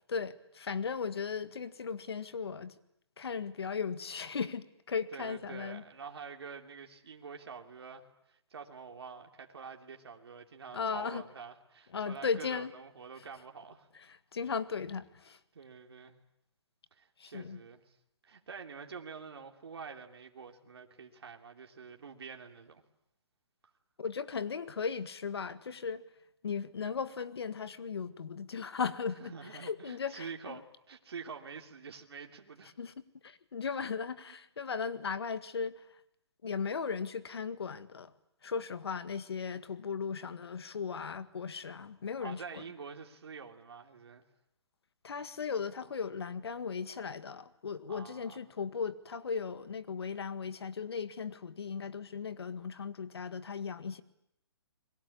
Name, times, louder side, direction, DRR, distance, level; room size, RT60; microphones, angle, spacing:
voice 1, 0.1-2.7 3.2-5.8 10.7-11.2 11.9-12.7 13.9-15.4 17.2-17.6 24.0-26.0 26.4-30.6 32.8-32.9 33.2-35.8 36.4-38.1 38.4-42.6 45.0-54.0, left 6 dB, 65° left, 13 dB, 1.7 m, -37 dB
voice 2, 5.1-13.9 15.5-16.2 16.9-17.8 18.2-22.8 29.2-32.7 33.7-33.8 42.2-44.2 47.9-48.4, right 5 dB, 60° right, 3 dB, 3.0 m, -47 dB
30.0 x 22.0 x 8.6 m, 0.77 s
hypercardioid pair, 180°, 14 cm